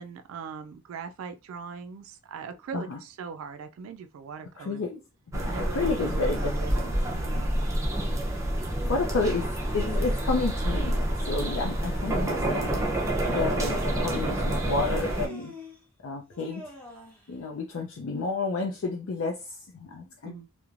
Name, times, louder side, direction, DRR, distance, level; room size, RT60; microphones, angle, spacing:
voice 1, 0.0-4.8 5.4-6.8 7.1-7.5 13.4-13.6 20.2-20.5, right 6 dB, 75° right, 0.3 m, -40 dB
voice 2, 4.6-5.0 5.3-6.9 7.3-7.4 8.8-9.5 9.7-12.8 13.2-15.5 16.0-16.6 17.3-20.3, left 3 dB, 70° left, 0.4 m, -31 dB
sound 1, 5.3-15.3, right 1 dB, 15° right, 0.6 m, -28 dB
Human voice, 15.0-15.8 16.3-17.3, left 1 dB, 10° left, 1.1 m, -46 dB
3.0 x 2.1 x 2.4 m
head